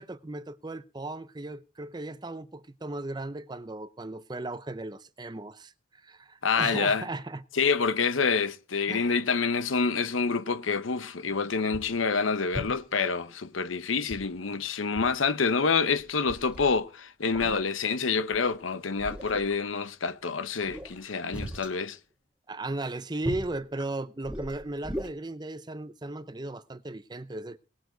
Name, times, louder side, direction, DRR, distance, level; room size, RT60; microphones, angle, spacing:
voice 1, 0.0-7.4 8.9-9.1 22.5-27.6, right 2 dB, 20° right, 0.6 m, -36 dB
voice 2, 6.4-7.0 7.5-22.0, left 5 dB, 85° left, 0.9 m, -27 dB
sound 1, 11.2-11.3 11.7-12.0 12.5-13.0 14.1-14.6 15.0-15.2 15.4-15.5 16.0-16.8 17.3-17.6 18.3-18.5 19.0-19.6 20.6-21.7 23.2-23.6 24.2-25.1, equal, 5° right, 1.4 m, -38 dB
19.0 x 9.3 x 3.9 m
head